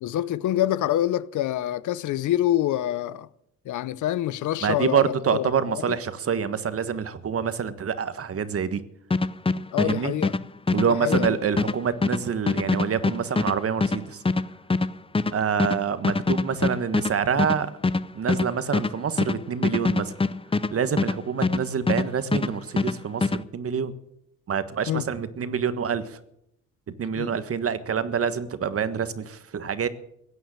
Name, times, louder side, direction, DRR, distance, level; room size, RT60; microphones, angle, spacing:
voice 1, 0.0-3.3 3.6-6.0 9.7-10.3 10.9-11.4 24.9-25.0 27.1-27.4, left 13 dB, 75° left, 0.8 m, -26 dB
voice 2, 4.6-8.8 9.8-10.1 10.7-14.2 15.3-17.7 18.1-20.1 20.7-23.9 24.5-26.0 27.0-29.9, right 7 dB, 50° right, 1.5 m, -26 dB
sound 1, 9.1-22.1 22.3-23.4, left 3 dB, 20° left, 0.7 m, -24 dB
16.5 x 9.3 x 8.9 m
cardioid pair, 90°, 30 cm